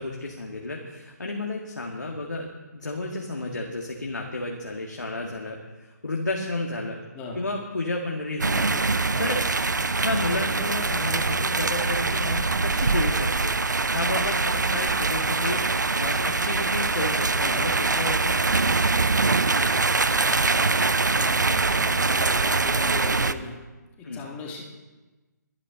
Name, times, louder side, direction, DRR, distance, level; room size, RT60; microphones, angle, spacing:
voice 1, 0.0-7.0 7.4-8.7 9.2-9.5 10.0-13.5 13.9-15.6 16.0-18.4 24.0-24.2, left 2 dB, 65° left, 0 dB, 2.0 m, -31 dB
sound 1, 8.4-23.3, right 3 dB, 70° right, 0.8 m, -23 dB
voice 2, 15.0-15.3 17.4-17.7 20.1-23.6 24.0-24.6, left 3 dB, 15° left, -1 dB, 2.3 m, -39 dB
23.5 x 9.6 x 3.9 m, 1.2 s
figure-of-eight pair, 145°, 10 cm